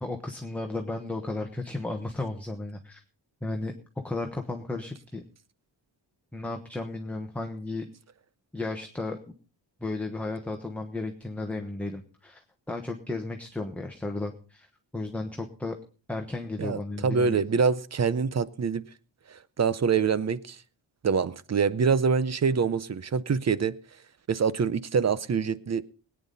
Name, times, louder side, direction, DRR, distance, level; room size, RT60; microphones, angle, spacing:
voice 1, 0.0-3.0 3.4-3.7 4.0-5.2 6.3-7.9 8.5-9.2 9.8-12.4 12.7-15.8 16.1-17.4, left 2 dB, 5° left, 1.2 m, -34 dB
voice 2, 16.6-18.8 19.3-20.6 21.0-23.7 24.3-25.8, right 5 dB, 35° right, 0.6 m, -25 dB
21.5 x 9.4 x 4.0 m
wide cardioid pair, 170°, 46 cm